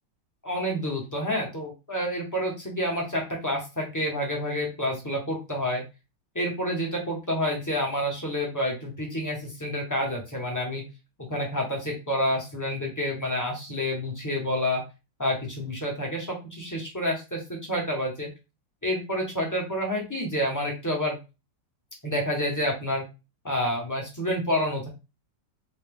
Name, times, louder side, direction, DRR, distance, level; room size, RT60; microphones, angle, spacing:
voice 1, 0.4-5.8 6.3-10.8 11.3-14.8 15.2-18.3 18.8-21.2 22.0-23.0 23.4-24.9, equal, 15° left, -1 dB, 0.6 m, -28 dB
4.0 x 2.3 x 3.4 m, 0.28 s
omnidirectional pair, 1.9 m